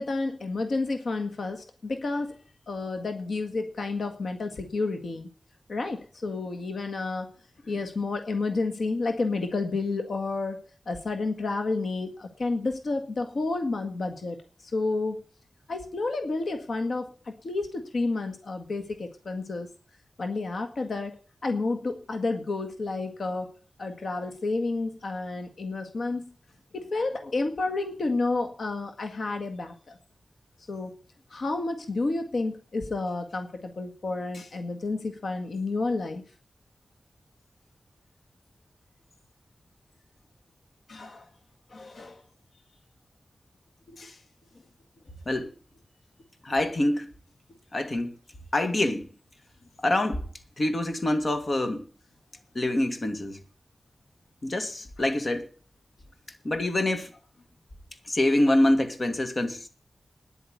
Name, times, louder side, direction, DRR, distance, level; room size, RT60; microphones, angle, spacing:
voice 1, 0.0-2.4 2.7-5.3 5.7-7.3 7.6-15.2 15.7-19.7 20.2-21.2 21.4-23.5 23.8-26.2 26.7-30.0 30.7-30.9 31.3-36.2 40.9-41.3 41.7-42.2 43.9-44.2, left 3 dB, 80° left, 1.7 m, -30 dB
voice 2, 46.4-47.1 47.7-48.1 48.5-49.1 49.8-50.2 50.6-51.9 52.5-53.4 54.4-55.5 56.4-57.1 58.1-59.7, left 1 dB, 50° left, 2.4 m, -25 dB
10.0 x 8.5 x 9.4 m
wide cardioid pair, 75°, 0 cm